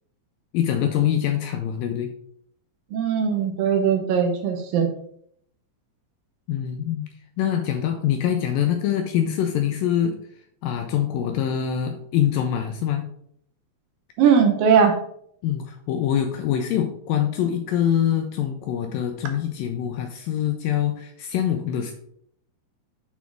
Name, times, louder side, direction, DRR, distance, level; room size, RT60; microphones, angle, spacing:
voice 1, 0.5-2.1 6.5-7.1 7.4-10.2 10.6-13.0 15.4-21.9, left 10 dB, 85° left, 5 dB, 2.1 m, -24 dB
voice 2, 2.9-4.9 14.2-15.0, right 7 dB, 75° right, 4 dB, 2.2 m, -19 dB
7.0 x 4.2 x 4.5 m, 0.68 s
omnidirectional pair, 4.5 m